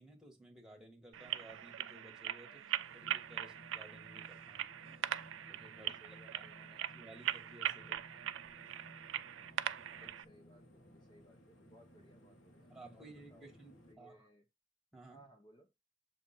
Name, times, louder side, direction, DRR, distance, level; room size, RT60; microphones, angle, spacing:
voice 1, 0.0-2.6 2.9-4.7 5.5-6.4 6.9-8.1 10.0-10.1 12.7-14.3 14.9-15.2, right 1 dB, 5° right, 1.6 m, -57 dB
sound 1, 1.1-10.2, right 10 dB, 85° right, 0.4 m, -41 dB
voice 2, 2.4-2.9 5.7-7.2 9.9-13.5 13.9-14.4 15.1-15.7, equal, 25° left, 0.7 m, -64 dB
sound 2, 2.8-13.9, equal, 70° left, 1.4 m, -60 dB
7.4 x 2.8 x 5.7 m
head